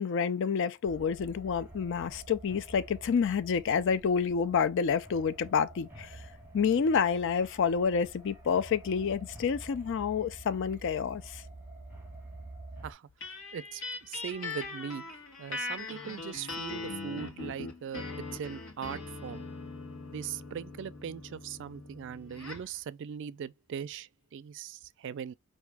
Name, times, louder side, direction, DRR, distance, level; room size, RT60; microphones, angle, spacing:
voice 1, 0.0-6.2 6.5-11.4, left 6 dB, 60° left, 0.4 m, -28 dB
sound 1, 0.8-12.9, right 2 dB, 10° right, 0.9 m, -48 dB
sound 2, 13.2-22.7, left 3 dB, 80° left, 1.3 m, -41 dB
voice 2, 13.5-18.0 18.3-19.4 20.1-25.3, right 8 dB, 60° right, 0.3 m, -40 dB
4.8 x 2.6 x 3.4 m
head